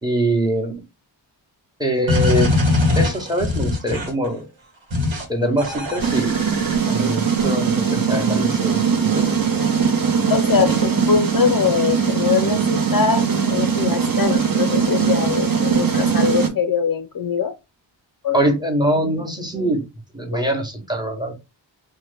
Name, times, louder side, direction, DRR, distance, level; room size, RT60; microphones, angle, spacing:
voice 1, 0.0-0.7 1.8-2.5 3.0-4.4 5.3-6.4 6.9-9.3 18.3-19.8 20.1-21.3, right 1 dB, 10° right, 0.9 m, -23 dB
sound 1, 2.1-4.3 4.9-5.2 5.6-7.4, left 2 dB, 90° right, 1.1 m, -22 dB
sound 2, 6.0-16.5, right 6 dB, 50° right, 0.8 m, -20 dB
voice 2, 10.3-17.5 18.2-18.4, left 7 dB, 50° left, 0.4 m, -22 dB
2.8 x 2.1 x 3.3 m
wide cardioid pair, 60°, 45 cm